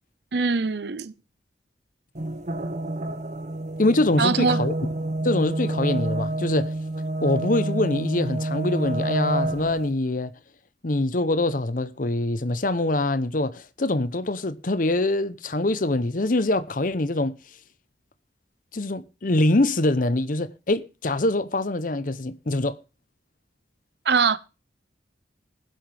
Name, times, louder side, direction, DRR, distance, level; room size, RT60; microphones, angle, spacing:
voice 1, 0.3-1.1 4.2-4.6 24.0-24.4, right 4 dB, 65° right, 0.8 m, -22 dB
sound 1, 2.1-9.9, right 1 dB, 40° right, 1.0 m, -28 dB
voice 2, 3.8-4.7 5.2-6.7 7.2-10.3 10.8-17.4 18.7-22.8, left 2 dB, 45° left, 0.8 m, -24 dB
20.5 x 7.8 x 3.5 m
head